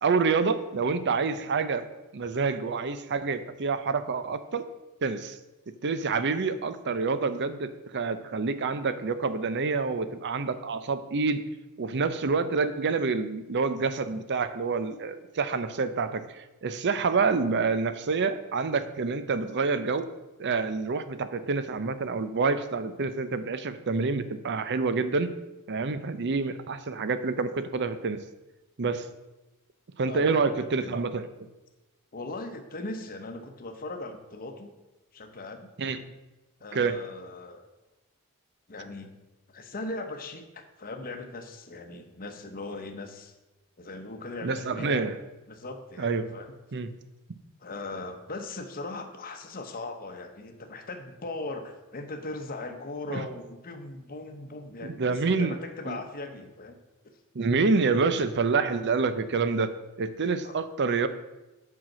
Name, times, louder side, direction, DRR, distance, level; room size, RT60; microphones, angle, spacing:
voice 1, 0.0-1.9 2.1-4.6 5.0-5.4 5.8-11.4 11.8-20.1 20.4-25.3 25.7-28.2 28.8-29.1 30.0-31.3 35.8-36.0 36.7-37.0 44.4-45.1 46.0-46.3 46.7-46.9 53.1-53.3 54.8-55.6 55.9-56.0 57.3-59.7 60.0-61.1, right 4 dB, 50° right, 12 dB, 0.6 m, -27 dB
voice 2, 30.1-30.4 30.8-30.9 32.1-34.7 35.1-35.7 36.6-37.7 38.7-39.1 39.5-43.4 43.8-45.0 45.5-46.5 47.6-56.8 60.4-60.5, left 2 dB, 40° left, 5 dB, 0.9 m, -39 dB
7.7 x 5.7 x 6.1 m, 1.1 s
head